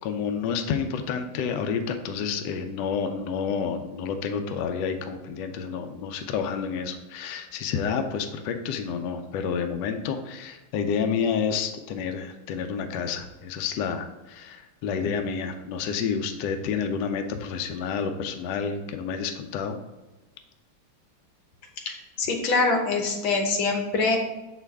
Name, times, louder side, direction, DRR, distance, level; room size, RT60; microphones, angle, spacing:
voice 1, 0.0-19.8, left 6 dB, 75° left, 6 dB, 1.1 m, -29 dB
voice 2, 21.9-24.2, left 3 dB, 90° left, 3 dB, 1.8 m, -24 dB
6.8 x 4.5 x 3.4 m, 1.1 s
omnidirectional pair, 2.1 m